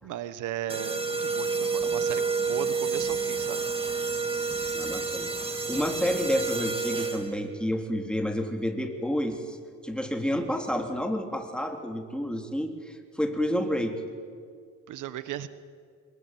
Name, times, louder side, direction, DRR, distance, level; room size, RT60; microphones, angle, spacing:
voice 1, 0.0-3.7 4.9-5.2 14.9-15.5, right 11 dB, 85° right, 13 dB, 1.4 m, -36 dB
sound 1, 0.7-7.5, right 4 dB, 20° right, 3.6 m, -29 dB
voice 2, 4.7-5.3 5.7-9.6 9.8-14.0, equal, 5° left, 4 dB, 3.7 m, -29 dB
27.0 x 22.5 x 9.3 m, 2.1 s
cardioid pair, 90°, 30 cm